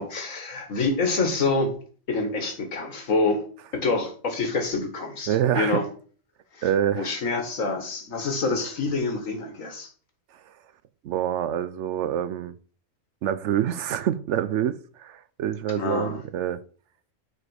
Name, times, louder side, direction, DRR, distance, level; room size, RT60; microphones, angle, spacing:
voice 1, 0.0-1.7 2.1-3.4 3.7-5.9 6.5-6.6 6.9-9.9 15.8-16.2, left 3 dB, 70° left, 2.0 m, -26 dB
voice 2, 5.3-5.8 6.6-7.1 11.0-12.5 13.2-16.6, right 10 dB, 65° right, 0.8 m, -26 dB
6.3 x 5.0 x 6.3 m
omnidirectional pair, 1.4 m